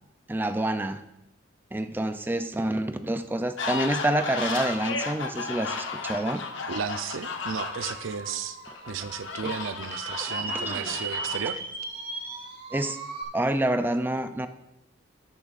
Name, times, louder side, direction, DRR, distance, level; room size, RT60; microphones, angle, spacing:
voice 1, 0.3-1.0 1.7-6.4 9.4-9.5 10.2-11.0 12.7-13.0 13.3-14.5, right 1 dB, 10° right, 9 dB, 0.4 m, -28 dB
sound 1, 3.6-8.4 8.7-11.4, left 4 dB, 70° left, 1.0 m, -34 dB
voice 2, 6.7-8.6 8.9-11.6, right 6 dB, 80° right, 11 dB, 0.6 m, -33 dB
sound 2, 7.6-13.2, right 4 dB, 50° right, 2.0 m, -37 dB
12.5 x 8.7 x 2.5 m, 0.92 s
head